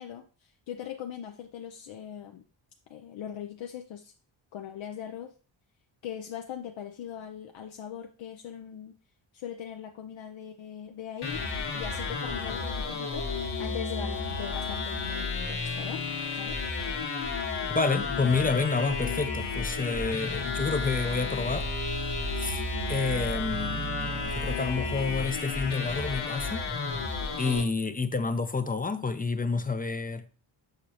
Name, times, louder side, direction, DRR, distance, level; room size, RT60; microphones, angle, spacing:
voice 1, 0.0-2.4 2.9-4.1 4.5-5.3 6.0-8.9 9.3-11.4 11.7-13.3 13.6-16.6, left 9 dB, 70° left, 0.7 m, -40 dB
sound 1, 11.2-27.6, left 4 dB, 55° left, 1.5 m, -32 dB
voice 2, 17.7-21.7 22.4-22.6 22.9-27.1 27.4-30.2, left 4 dB, 20° left, 0.5 m, -29 dB
sound 2, 20.4-26.3, right 13 dB, 60° right, 1.0 m, -41 dB
6.6 x 5.1 x 2.9 m
cardioid pair, 85°, 47 cm